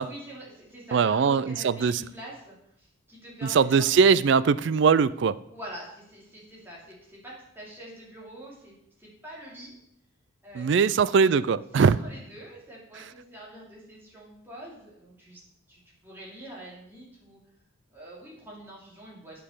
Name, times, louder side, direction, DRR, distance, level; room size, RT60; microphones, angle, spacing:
voice 1, 0.0-3.8 5.5-9.8 10.4-11.3 11.7-15.4 15.7-17.4 17.9-19.4, right 1 dB, 10° right, -5 dB, 2.7 m, -45 dB
voice 2, 0.9-2.0 3.4-5.4 10.5-12.0, right 6 dB, 55° right, 18 dB, 0.3 m, -21 dB
8.5 x 5.7 x 6.6 m, 0.78 s
head